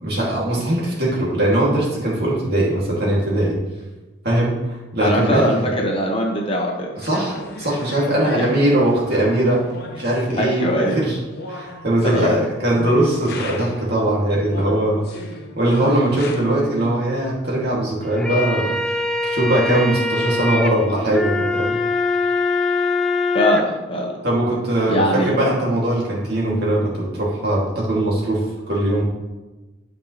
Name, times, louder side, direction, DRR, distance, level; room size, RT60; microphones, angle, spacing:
voice 1, 0.0-3.6 4.2-5.7 7.0-9.6 10.0-11.2 11.5-15.2 15.6-18.9 19.2-21.7 24.2-28.4 28.7-29.0, right 1 dB, 50° right, -5 dB, 2.6 m, -20 dB
voice 2, 5.0-6.9 8.2-8.5 10.0-10.1 10.4-11.0 12.0-12.3 23.3-24.2 24.9-25.3, equal, 30° left, 0 dB, 1.2 m, -21 dB
sound 1, 7.0-13.9 14.5-16.4, left 2 dB, 50° left, 1.0 m, -37 dB
sound 2, 18.0-23.6, left 3 dB, 5° left, 0.5 m, -23 dB
12.0 x 5.4 x 3.3 m, 1.1 s
head